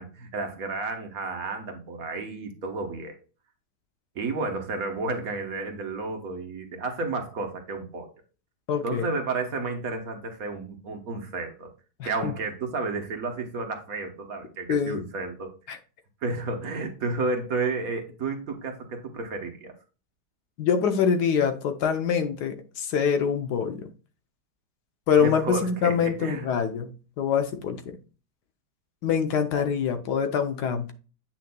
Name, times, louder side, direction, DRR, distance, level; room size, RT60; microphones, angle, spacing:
voice 1, 0.0-3.1 4.1-8.1 8.8-11.7 12.0-15.5 16.2-19.7 25.2-26.5, right 3 dB, 60° right, 1.5 m, -31 dB
voice 2, 8.7-9.0 12.0-12.3 14.7-15.1 15.7-15.8 20.6-23.9 25.1-27.8 29.0-30.9, left 7 dB, 75° left, 1.3 m, -25 dB
8.5 x 5.9 x 2.2 m
omnidirectional pair, 1.8 m